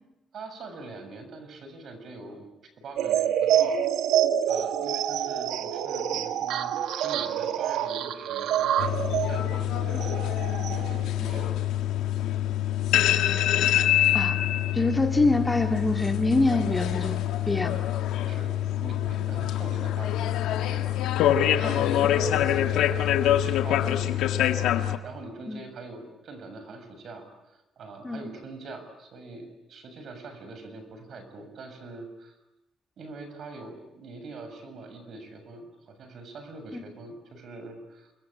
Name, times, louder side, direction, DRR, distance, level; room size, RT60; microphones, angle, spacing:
voice 1, 0.3-2.5 2.8-3.8 4.4-10.3 10.6-11.6 18.2-20.9 21.4-32.3 33.0-38.1, right 3 dB, 60° right, 8 dB, 7.1 m, -43 dB
sound 1, 3.0-11.0, right 10 dB, 85° right, 1.5 m, -27 dB
sound 2, 8.8-25.0, left 11 dB, 90° left, 1.7 m, -25 dB
voice 2, 14.7-17.2 17.5-17.9 21.6-22.1 25.5-25.6 28.0-28.2 36.7-36.8, left 2 dB, 15° left, 4 dB, 2.4 m, -25 dB
28.5 x 22.0 x 8.7 m, 0.96 s
cardioid pair, 90°, 0 cm